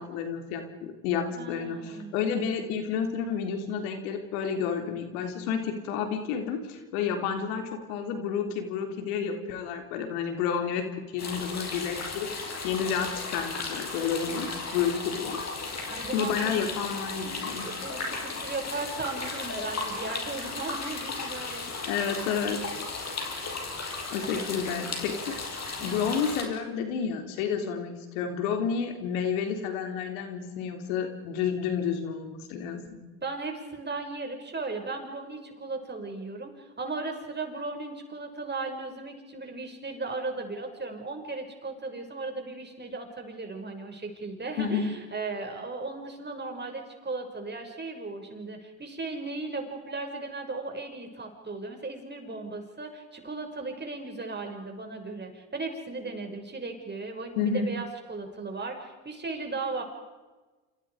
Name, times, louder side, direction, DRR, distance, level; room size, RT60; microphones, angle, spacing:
voice 1, 0.0-12.3 12.6-15.4 16.1-17.7 21.9-22.6 24.1-25.4 25.8-33.0 44.6-44.9 57.4-57.7, left 7 dB, 75° left, 5 dB, 3.6 m, -30 dB
voice 2, 1.3-2.2 14.3-14.6 15.9-16.7 17.6-21.9 24.3-24.8 25.8-26.0 27.5-27.7 33.2-59.8, right 3 dB, 25° right, 4 dB, 6.6 m, -37 dB
sound 1, 11.2-26.4, left 3 dB, 40° left, 7.0 m, -35 dB
29.5 x 27.0 x 5.1 m, 1.3 s
hypercardioid pair, 75°, 42 cm